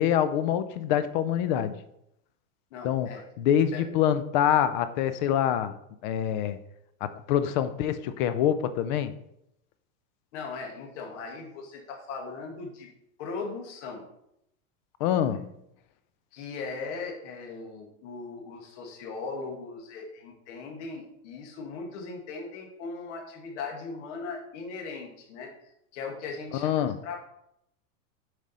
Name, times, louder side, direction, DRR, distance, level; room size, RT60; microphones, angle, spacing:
voice 1, 0.0-1.8 2.8-3.1 3.4-5.7 6.0-6.6 7.0-9.1 15.0-15.5 26.6-27.0, left 10 dB, 35° left, 13 dB, 0.4 m, -25 dB
voice 2, 2.7-3.3 3.7-3.8 10.3-12.9 13.2-14.0 16.3-27.1, left 4 dB, 60° left, 1 dB, 1.9 m, -38 dB
7.5 x 5.0 x 4.1 m, 0.79 s
supercardioid pair, 160°, 41 cm